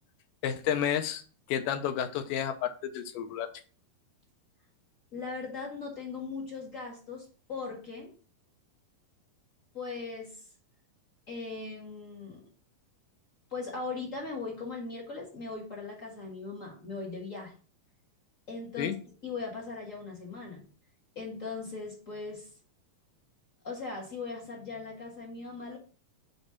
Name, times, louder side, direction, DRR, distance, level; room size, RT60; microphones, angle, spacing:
voice 1, 0.4-1.2 1.5-3.5 18.8-19.0, left 9 dB, 80° left, 8 dB, 2.1 m, -31 dB
voice 2, 5.1-8.1 9.7-10.4 11.3-12.4 13.5-17.6 18.5-18.9 19.2-20.6 21.1-22.5 23.6-25.8, left 4 dB, 40° left, -2 dB, 1.1 m, -39 dB
8.0 x 3.2 x 5.7 m, 0.38 s
omnidirectional pair, 4.2 m